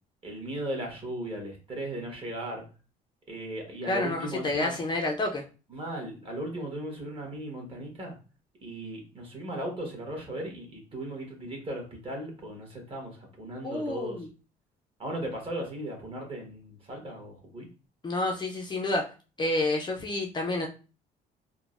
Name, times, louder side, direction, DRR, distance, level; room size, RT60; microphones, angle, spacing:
voice 1, 0.2-2.6 3.3-4.7 5.7-8.2 8.6-14.3 15.0-17.7, right 1 dB, 35° right, 0 dB, 1.3 m, -37 dB
voice 2, 3.9-5.4 13.6-14.3 18.0-19.1 19.4-20.7, left 2 dB, 25° left, 1 dB, 0.5 m, -29 dB
3.7 x 2.1 x 2.4 m, 0.34 s
cardioid pair, 110°, 17 cm